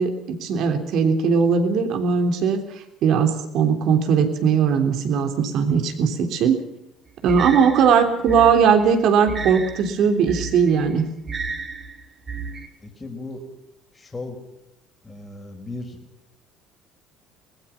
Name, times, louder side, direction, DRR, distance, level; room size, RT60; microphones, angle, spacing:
voice 1, 0.0-2.6 3.0-6.6 7.2-11.0, right 6 dB, 55° right, 6 dB, 3.3 m, -19 dB
sound 1, 7.3-12.7, right 4 dB, 30° right, 3.5 m, -33 dB
voice 2, 12.8-13.4 13.9-14.4 15.0-16.0, left 2 dB, 20° left, 2 dB, 5.0 m, -36 dB
23.5 x 20.5 x 5.9 m, 0.87 s
hypercardioid pair, 60°, 0 cm